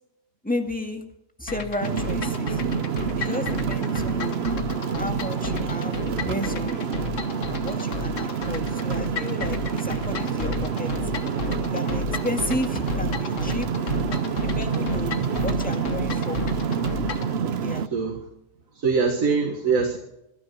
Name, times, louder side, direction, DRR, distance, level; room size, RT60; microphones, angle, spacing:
voice 1, 0.4-1.0 1.4-2.6 3.2-4.5 5.0-6.9 7.6-10.9 11.7-13.7 14.4-16.4 17.6-17.8, left 1 dB, 5° left, 4 dB, 1.7 m, -32 dB
sound 1, 1.5-17.3, left 7 dB, 65° left, 1.5 m, -34 dB
sound 2, 1.8-17.9, right 6 dB, 55° right, 1.0 m, -27 dB
voice 2, 17.9-18.3 18.7-20.0, right 5 dB, 75° right, 3 dB, 2.1 m, -23 dB
24.0 x 9.6 x 6.2 m, 0.86 s
omnidirectional pair, 1.4 m